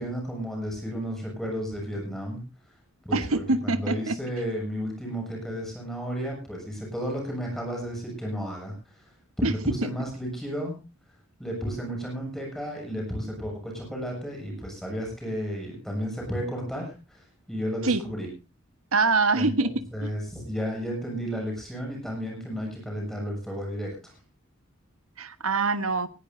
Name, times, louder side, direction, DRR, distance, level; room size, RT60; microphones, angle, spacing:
voice 1, 0.0-2.4 3.0-9.1 9.4-10.8 11.4-18.3 19.3-24.2, equal, ahead, 0 dB, 7.3 m, -33 dB
voice 2, 3.1-4.2 9.4-9.5 9.8-9.9 17.8-18.0 18.9-20.1 25.2-26.1, right 3 dB, 85° right, 11 dB, 1.4 m, -24 dB
19.0 x 17.0 x 2.7 m, 0.31 s
head